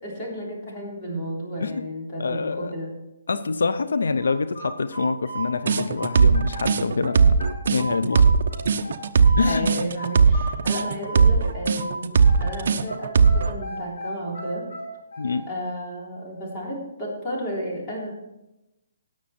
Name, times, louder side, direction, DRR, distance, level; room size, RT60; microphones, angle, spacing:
voice 1, 0.0-2.9 9.4-14.6 15.5-18.1, equal, 20° left, -4 dB, 3.6 m, -32 dB
voice 2, 2.2-2.7 3.3-7.4 7.7-8.3 9.4-9.7 15.2-15.4, left 4 dB, 90° left, 13 dB, 0.6 m, -25 dB
sound 1, 4.2-6.7 7.0-9.6 10.0-12.5 12.9-15.5, right 1 dB, 70° left, 5.2 m, -35 dB
sound 2, 5.7-13.5, right 5 dB, 55° right, 0.8 m, -18 dB
18.0 x 6.4 x 4.3 m, 0.93 s
hypercardioid pair, 170°, 0 cm